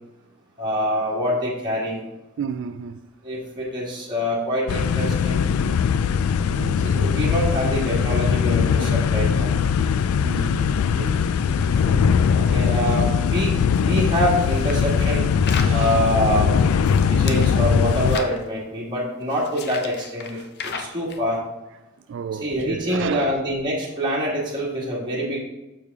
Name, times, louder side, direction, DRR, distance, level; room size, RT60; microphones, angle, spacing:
voice 1, 0.6-2.0 3.2-5.5 6.8-9.5 12.3-15.2 15.7-16.6 16.9-21.4 22.4-25.4, equal, 20° right, 1.9 m, -25 dB
voice 2, 2.4-3.0 6.4-7.2 10.2-12.2 12.4-12.6 15.6-16.0 20.3-20.4 22.1-23.3, right 7 dB, 55° right, 0.3 m, -33 dB
sound 1, 4.7-18.2, left 6 dB, 85° left, 0.3 m, -20 dB
sound 2, 13.7-15.8 16.5-17.5 17.8-18.4 19.2-21.2, left 5 dB, 50° left, 0.7 m, -35 dB
6.8 x 6.6 x 3.5 m
head